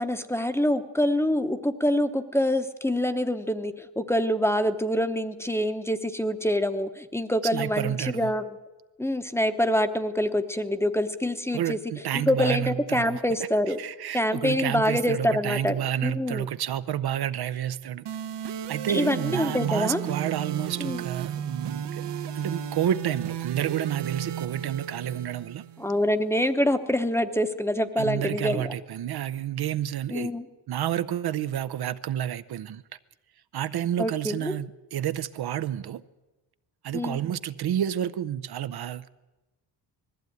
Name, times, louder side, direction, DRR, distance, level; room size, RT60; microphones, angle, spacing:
voice 1, 0.0-8.4 9.0-11.8 12.1-13.8 14.1-16.5 18.9-20.0 20.8-21.0 25.8-28.7 30.1-30.4 34.0-34.5 36.9-37.2, left 1 dB, 5° left, 0.9 m, -26 dB
voice 2, 7.5-8.3 11.5-13.2 13.7-18.0 18.7-22.1 22.3-25.6 28.0-30.3 30.7-32.8 33.5-36.0 36.8-39.1, right 10 dB, 65° right, 0.7 m, -30 dB
sound 1, 18.1-26.0, right 9 dB, 80° right, 1.1 m, -34 dB
20.5 x 14.5 x 9.4 m
wide cardioid pair, 165°, 42 cm